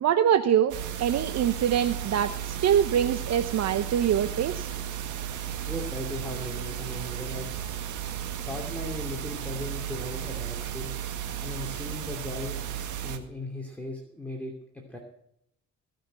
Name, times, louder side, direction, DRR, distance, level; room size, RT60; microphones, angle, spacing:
voice 1, 0.0-4.7, right 9 dB, 60° right, 10 dB, 0.9 m, -24 dB
sound 1, 0.7-13.2, right 10 dB, 80° right, 1.8 m, -34 dB
voice 2, 5.7-7.5 8.5-10.9 11.4-12.6 13.0-15.0, left 1 dB, 5° left, 0 dB, 2.8 m, -37 dB
19.5 x 6.6 x 9.0 m, 0.75 s
cardioid pair, 90°, 30 cm